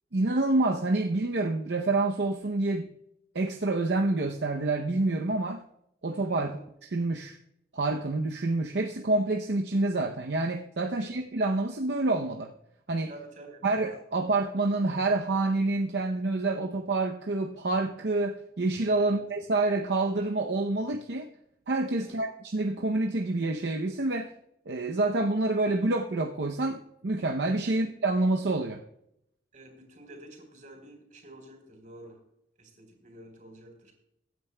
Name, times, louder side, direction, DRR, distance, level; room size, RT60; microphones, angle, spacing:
voice 1, 0.1-2.9 3.3-5.6 6.0-6.5 6.9-7.4 7.7-12.5 12.9-13.1 13.6-21.3 21.7-24.3 24.7-28.8, right 2 dB, 65° right, 0.7 m, -27 dB
voice 2, 6.3-6.6 10.9-11.2 13.1-13.7 19.0-19.2 22.0-22.2 27.7-27.9 29.5-32.2 32.6-33.9, right 1 dB, 45° right, 3.7 m, -49 dB
23.0 x 9.3 x 2.2 m
head